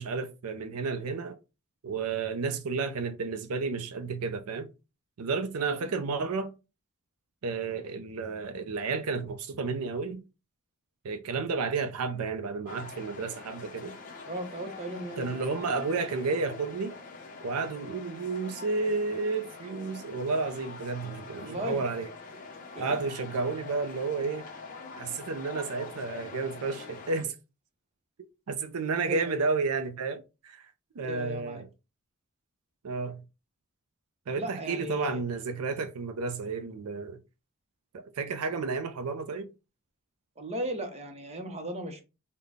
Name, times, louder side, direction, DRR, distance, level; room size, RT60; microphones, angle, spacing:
voice 1, 0.0-1.4 1.8-4.7 5.2-6.5 7.4-10.2 11.0-13.9 15.2-16.9 17.4-22.1 22.8-24.5 25.0-27.3 28.5-30.6 31.0-31.7 32.8-33.2 34.3-37.2 37.9-39.5, right 4 dB, 80° right, 0.5 m, -31 dB
voice 2, 5.6-5.9 14.3-15.3 21.4-21.8 22.7-23.0 29.0-29.4 31.0-31.6 34.3-35.2 40.4-42.0, equal, 30° right, 0.7 m, -36 dB
sound 1, 12.7-27.2, left 4 dB, 40° left, 0.8 m, -44 dB
3.8 x 2.2 x 3.4 m
head